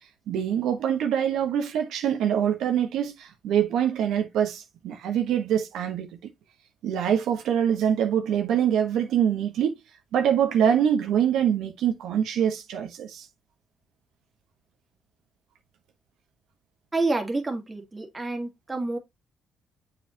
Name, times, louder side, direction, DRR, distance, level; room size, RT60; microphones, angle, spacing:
voice 1, 0.3-6.3 6.8-9.8 10.1-13.3, right 9 dB, 80° right, 1.1 m, -24 dB
voice 2, 16.9-19.0, right 2 dB, 20° right, 1.8 m, -28 dB
7.3 x 4.9 x 2.8 m
cardioid pair, 90°, 0 cm